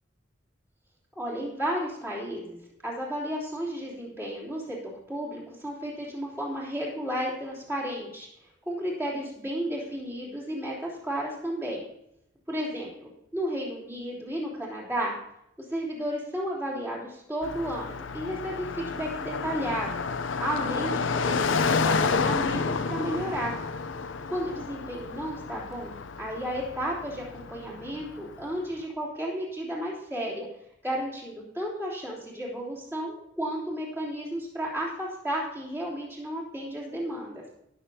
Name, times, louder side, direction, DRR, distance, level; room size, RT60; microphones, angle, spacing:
voice 1, 1.1-8.3 8.7-11.8 12.5-15.1 15.7-19.9 20.4-23.6 24.3-30.5 30.8-37.4, equal, 10° right, -6 dB, 3.2 m, -33 dB
Car passing by, 17.4-28.5, left 4 dB, 70° left, 0.6 m, -30 dB
19.0 x 7.0 x 2.8 m, 0.82 s
head